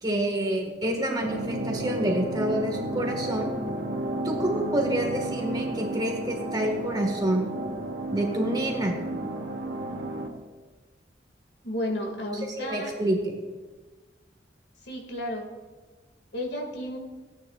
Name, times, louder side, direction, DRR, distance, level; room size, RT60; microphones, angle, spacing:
voice 1, 0.0-3.5 4.2-7.5 8.1-8.9 12.6-13.4, right 1 dB, 25° right, 1 dB, 1.6 m, -27 dB
sound 1, 1.2-10.3, right 1 dB, 80° right, 1.2 m, -32 dB
voice 2, 11.6-12.9 14.8-15.4 16.3-17.0, left 1 dB, 65° left, 1 dB, 2.1 m, -32 dB
16.0 x 9.4 x 2.4 m, 1.3 s
head